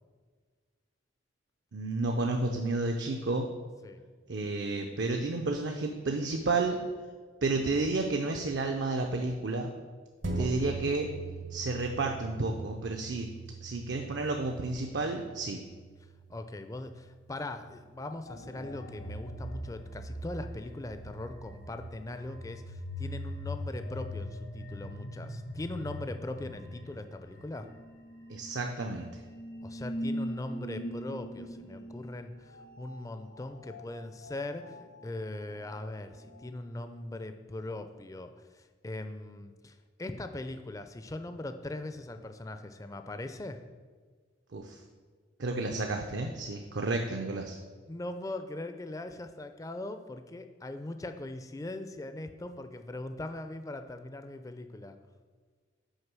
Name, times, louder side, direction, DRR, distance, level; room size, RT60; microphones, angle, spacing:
voice 1, 1.7-3.5 4.3-6.8 7.4-9.7 10.4-11.1 11.5-13.3 13.6-15.6 28.3-29.1 44.5-44.8 45.4-47.6, right 3 dB, 65° right, 3 dB, 0.5 m, -31 dB
sound 1, 10.2-19.0 19.5-19.6, right 3 dB, 80° right, 1.2 m, -42 dB
voice 2, 10.4-10.9 16.3-27.7 29.6-43.6 47.9-55.0, left 2 dB, 15° left, 8 dB, 0.4 m, -40 dB
sound 2, 18.3-36.5, equal, 70° left, 1.1 m, -42 dB
6.5 x 4.7 x 6.0 m, 1.5 s
head